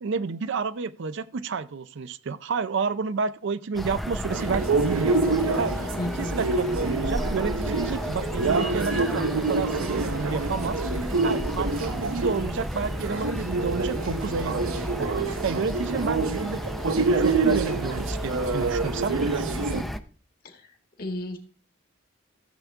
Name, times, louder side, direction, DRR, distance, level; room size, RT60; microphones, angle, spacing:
voice 1, 0.0-5.2 5.6-5.8 6.2-10.8 11.2-15.1 15.4-19.8, right 5 dB, 60° right, 0.5 m, -30 dB
sound 1, 3.7-20.0, equal, ahead, 0.4 m, -32 dB
sound 2, 4.3-19.8, right 3 dB, 85° right, 0.9 m, -27 dB
voice 2, 6.0-6.4 20.4-21.4, left 2 dB, 45° left, 1.7 m, -34 dB
14.0 x 7.1 x 3.5 m
head